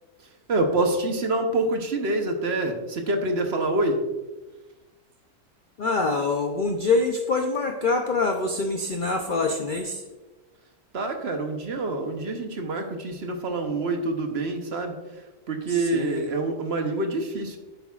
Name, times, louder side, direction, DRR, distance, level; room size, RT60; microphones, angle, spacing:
voice 1, 0.5-4.1 10.9-17.6, right 2 dB, 50° right, 5 dB, 1.0 m, -26 dB
voice 2, 5.8-10.0 15.7-16.3, left 3 dB, 60° left, 3 dB, 0.5 m, -25 dB
10.0 x 8.1 x 2.4 m, 1.1 s
omnidirectional pair, 1.6 m